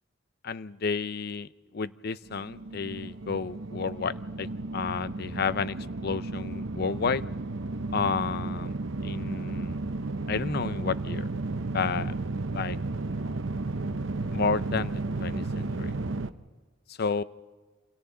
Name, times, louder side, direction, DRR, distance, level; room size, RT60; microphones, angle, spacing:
voice 1, 0.4-4.5 4.7-5.8 6.0-7.2 7.9-8.8 9.0-9.8 10.3-11.3 11.7-12.1 12.5-12.8 14.3-16.0 16.9-17.2, left 5 dB, 55° left, 16 dB, 0.6 m, -31 dB
sound 1, 2.3-16.3, right 2 dB, 75° right, 0.8 m, -33 dB
28.5 x 26.5 x 3.9 m, 1.4 s
head